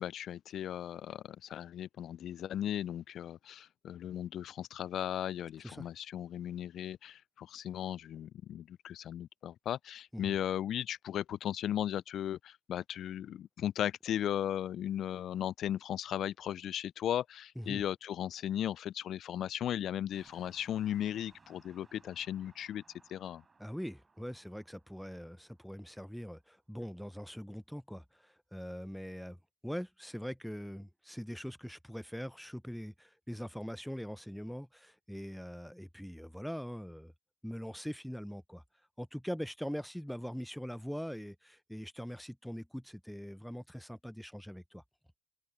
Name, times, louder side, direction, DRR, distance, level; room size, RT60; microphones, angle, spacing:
voice 1, 0.0-22.8 23.1-23.4, left 10 dB, 50° left, 0.3 m, -36 dB
sound 1, 20.1-26.1, right 4 dB, 25° right, 4.7 m, -64 dB
voice 2, 23.6-29.4 29.6-37.1 37.4-38.6 39.0-44.8, equal, ahead, 0.7 m, -42 dB
open air
supercardioid pair, 85°, 0 cm